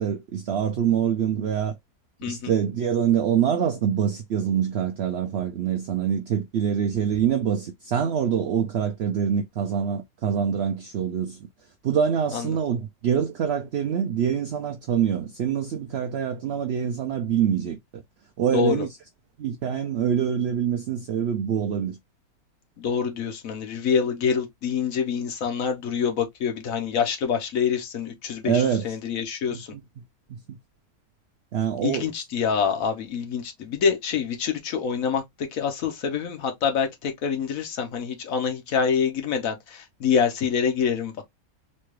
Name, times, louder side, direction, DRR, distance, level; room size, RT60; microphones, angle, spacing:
voice 1, 0.0-1.8 2.3-11.4 11.8-18.0 18.4-18.9 19.4-22.0 28.4-29.0 29.5-29.8 30.3-30.4 31.5-32.1, right 8 dB, 65° right, 0.6 m, -25 dB
voice 2, 2.2-2.5 12.3-12.6 18.5-18.9 22.8-29.7 31.8-41.2, left 6 dB, 70° left, 1.3 m, -26 dB
4.2 x 2.3 x 3.1 m
omnidirectional pair, 1.5 m